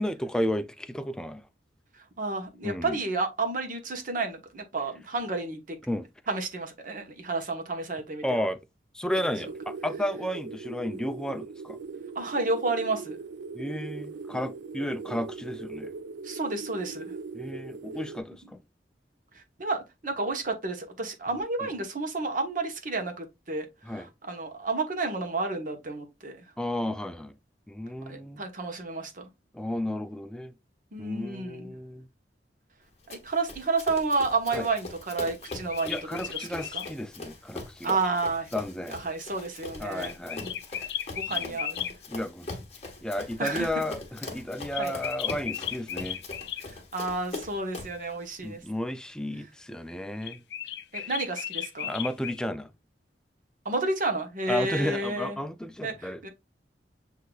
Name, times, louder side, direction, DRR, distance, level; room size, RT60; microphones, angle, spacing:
voice 1, 0.0-1.4 2.6-3.0 5.9-6.1 8.2-8.6 8.9-11.8 13.5-15.9 17.3-18.6 23.9-24.1 26.6-27.3 27.7-28.4 29.5-30.5 31.0-32.1 34.5-34.7 35.9-38.0 38.5-39.0 39.8-40.5 41.3-41.6 42.1-42.5 43.0-46.2 48.4-50.4 51.0-51.1 51.8-52.7 54.5-56.2, left 1 dB, 5° left, 0.3 m, -33 dB
voice 2, 1.9-5.8 6.3-8.4 12.1-13.2 16.2-17.1 19.3-26.5 28.1-29.3 30.9-31.7 33.1-36.8 37.8-38.5 38.9-40.2 40.4-40.5 41.1-41.9 43.4-43.7 44.7-45.0 46.6-48.6 50.9-51.9 53.6-55.4 55.8-56.3, right 3 dB, 50° right, 1.0 m, -31 dB
sound 1, 9.4-18.2, right 4 dB, 80° right, 0.4 m, -40 dB
Run, 33.1-48.0, left 2 dB, 40° left, 1.2 m, -41 dB
sound 2, 35.4-36.9 40.0-41.9 44.7-46.7 50.2-52.4, left 10 dB, 70° left, 0.4 m, -35 dB
7.7 x 2.7 x 2.3 m
head